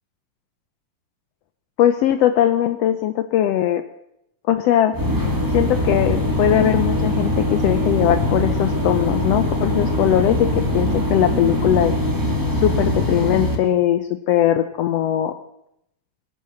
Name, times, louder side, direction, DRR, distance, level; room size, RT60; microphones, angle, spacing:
voice 1, 1.8-3.8 4.5-4.9 5.5-11.9 12.5-14.0 14.3-15.3, left 11 dB, 85° left, 9 dB, 1.4 m, -19 dB
sound 1, 4.9-13.5, left 1 dB, 5° right, 1.9 m, -22 dB
22.0 x 9.6 x 6.4 m, 0.79 s
omnidirectional pair, 3.8 m